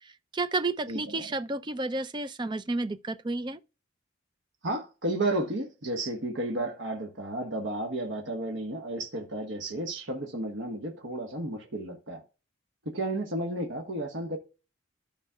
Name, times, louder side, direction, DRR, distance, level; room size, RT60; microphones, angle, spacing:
voice 1, 0.0-3.6, right 2 dB, 20° right, 0.4 m, -31 dB
voice 2, 0.9-1.3 4.6-12.2 12.8-14.4, right 1 dB, 70° right, 1.4 m, -32 dB
14.0 x 5.3 x 2.3 m
head